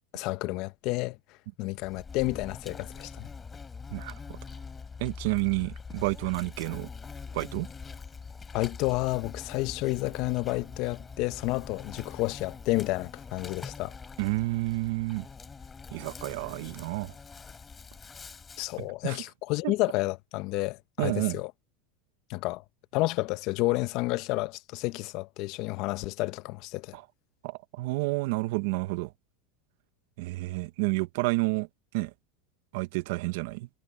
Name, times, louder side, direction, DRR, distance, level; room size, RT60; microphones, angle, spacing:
voice 1, 0.1-1.2 1.6-3.3 8.5-13.9 18.6-21.5 22.3-22.6 22.9-27.0, left 21 dB, 55° left, 0.9 m, -30 dB
Insect, 1.8-18.8, left 5 dB, 20° left, 4.6 m, -44 dB
voice 2, 3.9-4.4 5.0-6.9 7.3-7.7 14.2-15.3 15.9-17.2 18.8-19.2 19.6-19.7 21.0-21.4 26.9-27.0 27.4-29.1 30.2-31.7 31.9-32.1 32.7-33.7, right 22 dB, 70° right, 0.8 m, -30 dB
supercardioid pair, 120°, 0 cm